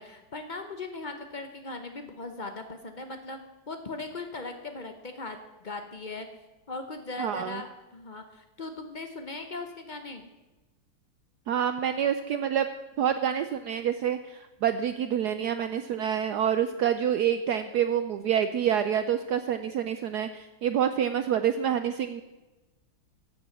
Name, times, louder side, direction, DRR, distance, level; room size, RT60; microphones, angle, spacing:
voice 1, 0.0-6.3 6.7-10.3, left 3 dB, 75° left, 6 dB, 0.4 m, -39 dB
voice 2, 7.2-7.6 11.5-12.7 13.0-22.2, right 9 dB, 75° right, 10 dB, 0.9 m, -27 dB
14.5 x 7.8 x 7.2 m, 1.1 s
omnidirectional pair, 2.3 m